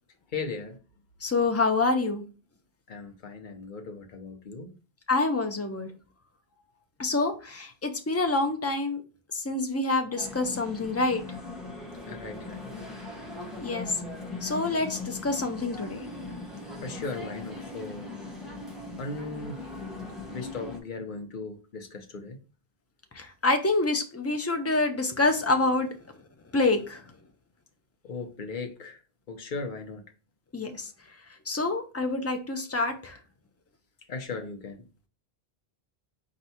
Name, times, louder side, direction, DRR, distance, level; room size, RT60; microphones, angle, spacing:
voice 1, 0.3-0.8 2.9-4.7 12.1-12.7 16.8-18.1 19.0-19.6 20.3-22.4 28.0-29.0 29.3-30.0 34.1-34.8, left 4 dB, 55° left, 0.9 m, -37 dB
voice 2, 1.2-2.2 5.1-5.9 7.0-9.0 9.3-11.2 13.6-14.0 14.4-16.1 23.1-26.0 26.5-27.0 30.5-30.9 31.5-33.2, left 3 dB, 20° left, 0.4 m, -27 dB
sound 1, 10.2-20.8, left 2 dB, ahead, 0.9 m, -40 dB
4.5 x 2.6 x 4.1 m
omnidirectional pair, 1.0 m